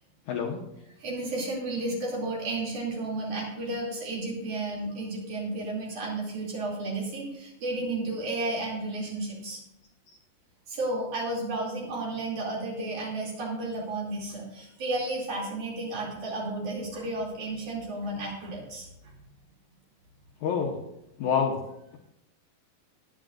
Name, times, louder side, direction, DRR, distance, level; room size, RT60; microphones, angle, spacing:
voice 1, 0.3-0.6 20.4-20.8 21.2-21.6, left 6 dB, 70° left, 1 dB, 1.9 m, -27 dB
voice 2, 1.0-9.6 10.7-18.9, right 2 dB, 55° right, -3 dB, 4.0 m, -32 dB
19.5 x 9.1 x 2.5 m, 0.81 s
omnidirectional pair, 4.4 m